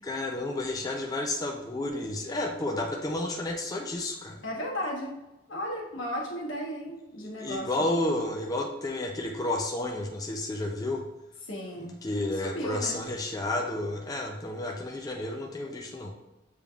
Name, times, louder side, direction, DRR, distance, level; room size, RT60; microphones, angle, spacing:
voice 1, 0.0-4.4 7.2-11.0 11.8-16.1, left 2 dB, 20° left, 1 dB, 0.4 m, -31 dB
voice 2, 4.4-5.1 5.5-7.7 11.4-12.0 12.4-13.0, equal, 85° left, -2 dB, 1.2 m, -34 dB
6.8 x 3.3 x 2.3 m, 0.95 s
head